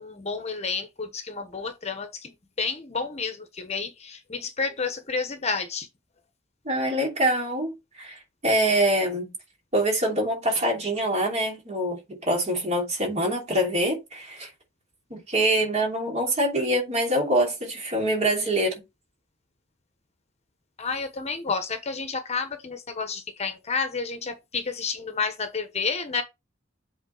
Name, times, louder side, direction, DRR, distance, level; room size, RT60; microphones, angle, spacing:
voice 1, 0.0-5.9 20.8-26.2, left 5 dB, 35° left, 1.0 m, -30 dB
voice 2, 6.6-9.3 9.7-14.5 15.1-18.8, right 1 dB, 35° right, 3.0 m, -25 dB
8.0 x 3.9 x 3.9 m
head